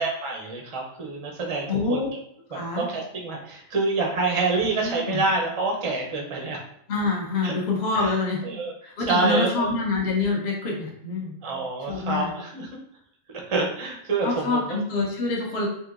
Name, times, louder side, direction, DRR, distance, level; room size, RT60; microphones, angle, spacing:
voice 1, 0.0-2.1 2.5-6.6 7.4-7.5 7.9-8.1 8.4-8.7 9.1-9.7 11.4-12.7 13.5-14.8, right 3 dB, 40° right, 0 dB, 0.4 m, -27 dB
voice 2, 1.7-2.1 2.5-2.9 4.6-5.2 6.9-8.4 8.8-11.4 11.9-12.4 14.2-15.7, left 3 dB, 55° left, -2 dB, 1.0 m, -26 dB
3.6 x 2.7 x 2.4 m, 0.74 s
omnidirectional pair, 1.4 m